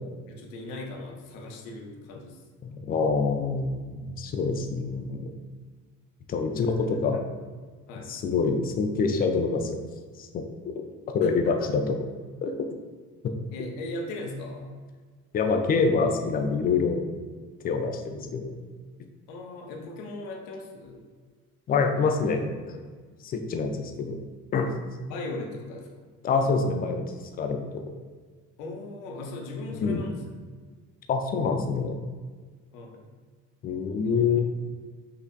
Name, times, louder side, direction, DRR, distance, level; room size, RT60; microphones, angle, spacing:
voice 1, 0.3-2.4 6.6-7.3 7.9-8.1 11.2-11.7 13.5-14.7 19.3-21.0 25.1-26.1 28.6-30.2 32.7-33.1 34.2-34.4, left 2 dB, 60° left, 1 dB, 0.8 m, -38 dB
voice 2, 2.6-5.2 6.3-7.2 8.1-9.8 10.2-10.8 11.1-11.9 12.4-12.7 13.2-13.3 15.3-17.0 17.6-18.5 21.7-22.8 23.2-24.2 24.5-24.7 26.2-27.0 27.4-27.9 29.7-30.0 31.1-32.0 33.6-34.4, left 4 dB, 20° left, 4 dB, 0.3 m, -26 dB
5.5 x 3.3 x 2.3 m, 1.5 s
figure-of-eight pair, 60°, 47 cm